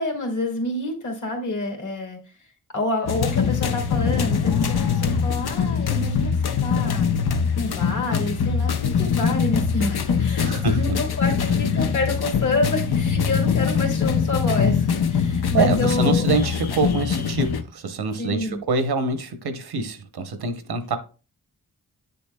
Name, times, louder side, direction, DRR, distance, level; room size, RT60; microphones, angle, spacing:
voice 1, 0.0-2.2 2.7-7.1 7.6-16.3 18.2-18.6, left 2 dB, 55° left, 1 dB, 2.0 m, -28 dB
sound 1, 3.1-17.6, left 6 dB, 85° left, 0.7 m, -22 dB
voice 2, 10.4-10.9 15.5-21.0, right 4 dB, 90° right, 8 dB, 1.0 m, -25 dB
8.2 x 7.0 x 2.2 m, 0.34 s
wide cardioid pair, 85°, 37 cm